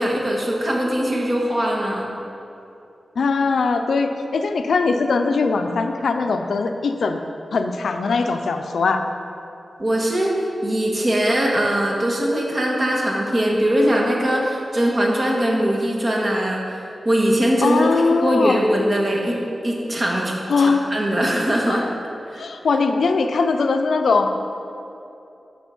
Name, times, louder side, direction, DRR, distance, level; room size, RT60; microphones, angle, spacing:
voice 1, 0.0-2.1 9.8-10.3 10.6-16.6 17.0-19.4 19.6-21.8 22.3-22.4, equal, 35° right, -2 dB, 1.5 m, -21 dB
voice 2, 3.2-7.2 7.5-9.0 17.6-18.6 20.5-20.8 21.6-21.8 22.4-24.3, left 4 dB, 85° left, 6 dB, 0.6 m, -20 dB
9.3 x 6.1 x 5.4 m, 2.7 s
wide cardioid pair, 150°, 0 cm